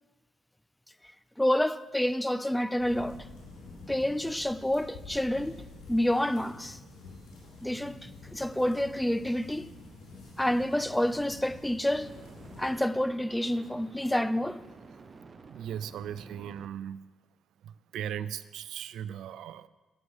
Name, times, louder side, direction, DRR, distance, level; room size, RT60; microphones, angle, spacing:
voice 1, 1.4-3.3 3.9-5.6 5.9-6.8 7.6-9.7 10.4-12.1 12.6-14.6, left 1 dB, 5° left, 0.3 m, -28 dB
sound 1, 2.8-12.7, left 3 dB, 85° left, 3.2 m, -48 dB
sound 2, 7.1-7.3 12.0-16.7, right 4 dB, 40° right, 0.7 m, -51 dB
voice 2, 15.5-17.0 17.6-19.7, right 9 dB, 80° right, 0.3 m, -38 dB
8.5 x 7.9 x 4.7 m
cardioid pair, 90°, 0 cm